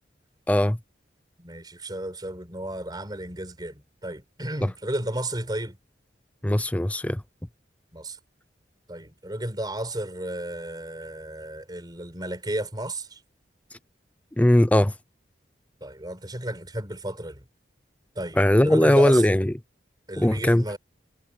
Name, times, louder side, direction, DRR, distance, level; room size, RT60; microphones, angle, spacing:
voice 1, 0.5-0.8 4.6-4.7 6.4-7.2 14.4-14.9 18.4-19.5 20.2-20.7, left 1 dB, 10° left, 0.5 m, -19 dB
voice 2, 1.4-5.8 7.9-8.2 8.9-13.2 15.8-17.4 18.1-19.4 20.1-20.8, right 1 dB, 25° right, 4.8 m, -33 dB
head